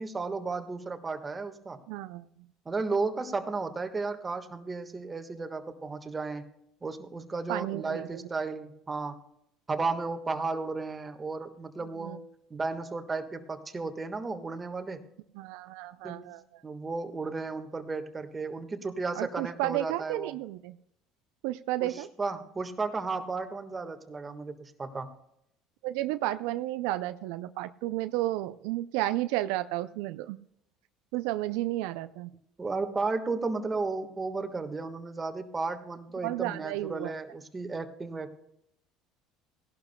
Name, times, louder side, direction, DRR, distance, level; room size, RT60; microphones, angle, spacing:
voice 1, 0.0-1.8 2.6-6.5 6.8-9.2 9.7-12.2 12.5-15.1 16.0-16.4 16.6-20.3 21.8-25.1 32.6-38.4, right 3 dB, 25° right, 7 dB, 1.4 m, -34 dB
voice 2, 1.9-2.2 7.5-8.2 12.0-12.2 15.4-16.4 19.2-20.7 21.4-22.1 25.8-30.4 31.1-32.3 36.2-37.1, right 16 dB, 80° right, 11 dB, 0.4 m, -32 dB
17.5 x 11.5 x 2.2 m, 0.77 s
supercardioid pair, 90°, 0 cm